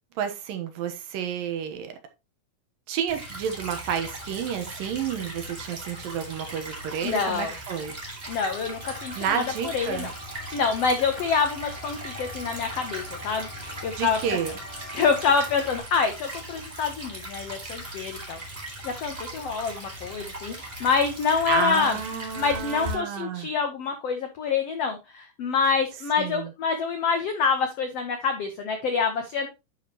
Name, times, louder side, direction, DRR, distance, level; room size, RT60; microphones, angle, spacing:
voice 1, 0.2-1.9 2.9-8.0 9.2-10.1 14.0-14.5 21.5-23.5 26.2-26.5, right 8 dB, 75° right, 2.7 m, -30 dB
Stream / Trickle dribble, 3.1-22.9, right 1 dB, 20° right, 1.6 m, -39 dB
voice 2, 7.0-7.5 8.3-10.1 10.5-14.4 14.9-18.4 18.8-22.0 22.3-29.5, left 5 dB, 80° left, 1.4 m, -26 dB
sound 1, 8.6-15.8, left 1 dB, 60° left, 5.6 m, -43 dB
11.0 x 5.1 x 2.9 m
omnidirectional pair, 4.2 m